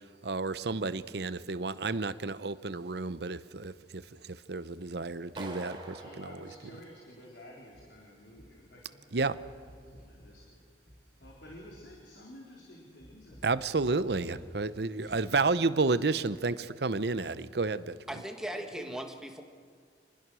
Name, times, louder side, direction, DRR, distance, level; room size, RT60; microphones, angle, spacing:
voice 1, 0.2-6.4 6.6-6.8 9.1-9.4 13.4-18.2, right 3 dB, 65° right, 14 dB, 0.8 m, -31 dB
Clapping, 5.4-7.4, right 2 dB, 25° right, 3.4 m, -45 dB
voice 2, 5.9-9.6 9.9-10.7 11.2-14.3 14.7-15.7 16.0-16.1 18.2-19.0, left 1 dB, 80° left, -2 dB, 3.9 m, -52 dB
sound 1, 7.7-15.5 15.8-15.9, equal, 45° left, 4.7 m, -56 dB
voice 3, 18.1-19.4, right 1 dB, 5° right, 3 dB, 1.7 m, -38 dB
27.0 x 20.0 x 6.3 m, 2.1 s
head